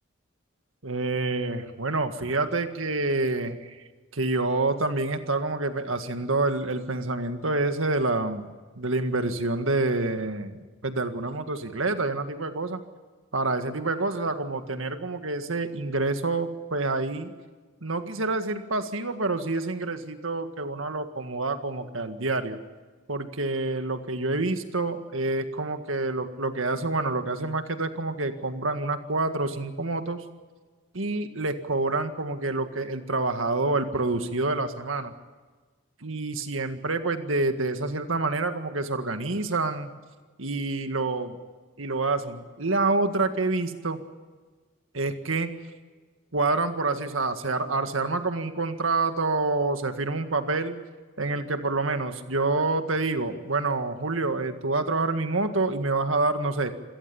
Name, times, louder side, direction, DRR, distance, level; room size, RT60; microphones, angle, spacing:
voice 1, 0.8-3.8 4.1-8.5 8.8-12.8 13.3-17.3 17.8-22.6 23.1-30.2 30.9-35.1 36.0-39.9 40.4-41.4 41.8-44.0 44.9-45.5 46.3-50.8 51.2-56.7, right 3 dB, 90° right, 8 dB, 1.8 m, -27 dB
26.5 x 17.5 x 7.1 m, 1.3 s
head